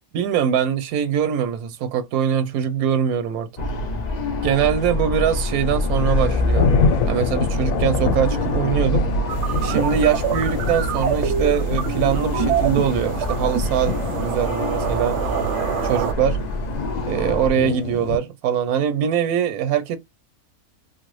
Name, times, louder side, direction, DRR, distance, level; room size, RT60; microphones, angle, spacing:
voice 1, 0.1-3.5 4.4-6.7 7.1-9.0 9.6-15.2 15.8-16.4 17.1-20.0, right 8 dB, 85° right, 1.1 m, -22 dB
sound 1, 3.6-17.5, left 1 dB, 70° left, 0.4 m, -25 dB
sound 2, 5.6-18.2, left 5 dB, 85° left, 1.1 m, -27 dB
sound 3, 9.3-16.1, right 9 dB, 65° right, 0.8 m, -26 dB
3.3 x 2.1 x 3.0 m
omnidirectional pair, 1.5 m